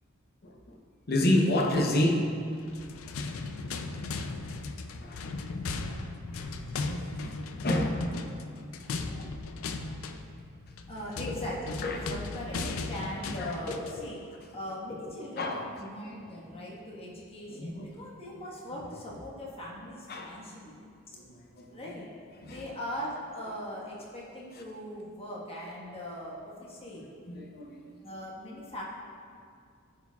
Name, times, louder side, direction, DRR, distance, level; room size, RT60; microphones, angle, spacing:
voice 1, 0.4-0.8 1.1-2.4 3.6-3.9 5.0-5.3 7.2-8.4 8.9-9.9 11.8-12.0 13.4-13.5 15.4-15.6 17.5-17.9 20.1-20.4 21.1-21.8 22.4-22.6 23.5-23.6 24.5-24.6 27.3-27.8, left 1 dB, 50° left, 2 dB, 0.7 m, -30 dB
sound 1, 2.6-14.0, left 3 dB, 75° left, 0.4 m, -36 dB
voice 2, 10.9-14.2 14.5-20.8 21.1-21.2 21.7-22.1 22.4-27.1 28.0-28.8, left 1 dB, 30° left, -5 dB, 1.3 m, -39 dB
13.0 x 4.7 x 2.3 m, 2.3 s
head